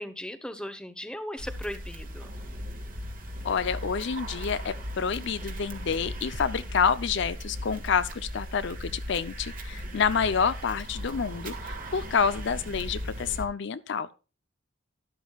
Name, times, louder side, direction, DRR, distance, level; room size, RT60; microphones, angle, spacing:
voice 1, 0.0-2.3, equal, 5° left, 0.9 m, -37 dB
sound 1, 1.4-13.5, equal, 45° right, 2.1 m, -38 dB
voice 2, 3.4-14.1, left 6 dB, 60° left, 0.5 m, -28 dB
12.0 x 11.0 x 2.3 m
head